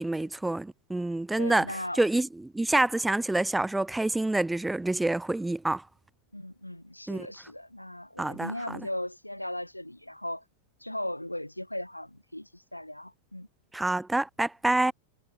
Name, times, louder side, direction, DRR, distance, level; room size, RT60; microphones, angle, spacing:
voice 1, 0.0-1.7 2.0-5.8 7.1-7.3 8.2-8.5 13.7-14.9, right 2 dB, 5° right, 0.4 m, -27 dB
voice 2, 1.4-2.0 6.3-10.4 10.8-13.5, left 1 dB, 85° left, 1.6 m, -37 dB
figure-of-eight pair, 90°, 0 cm